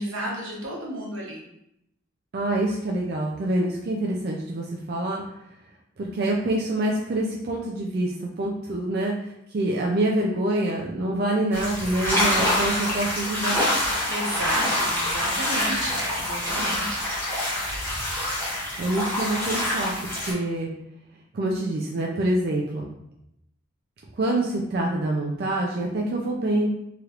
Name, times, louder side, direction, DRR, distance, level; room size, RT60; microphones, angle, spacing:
voice 1, 0.0-1.4 14.1-17.0, right 1 dB, 85° right, -3 dB, 1.0 m, -32 dB
voice 2, 2.3-5.2 6.0-9.1 9.5-13.7 18.8-20.7 21.3-22.8 24.1-26.7, right 1 dB, 50° right, -2 dB, 0.3 m, -26 dB
sound 1, 11.5-20.3, left 1 dB, 10° left, 0.7 m, -26 dB
3.2 x 2.9 x 2.4 m, 0.80 s
head